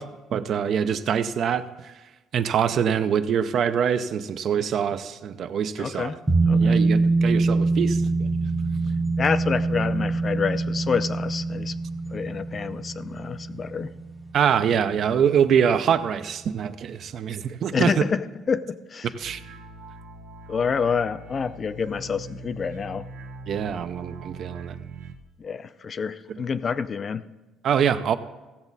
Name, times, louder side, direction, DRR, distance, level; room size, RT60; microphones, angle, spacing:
voice 1, 0.0-1.7 2.3-6.1 6.6-8.3 14.3-18.0 19.2-19.4 23.5-24.8 27.6-28.2, right 8 dB, 50° right, 0.5 m, -24 dB
voice 2, 5.8-6.2 6.5-6.8 9.2-11.8 12.1-13.9 17.7-19.1 20.5-23.1 25.4-27.3, left 6 dB, 30° left, 0.4 m, -28 dB
sound 1, 6.3-15.4 15.7-15.8, right 3 dB, 10° right, 0.7 m, -24 dB
sound 2, 19.2-25.2, right 3 dB, 85° right, 0.9 m, -41 dB
16.0 x 7.2 x 4.0 m
cardioid pair, 135°, 0 cm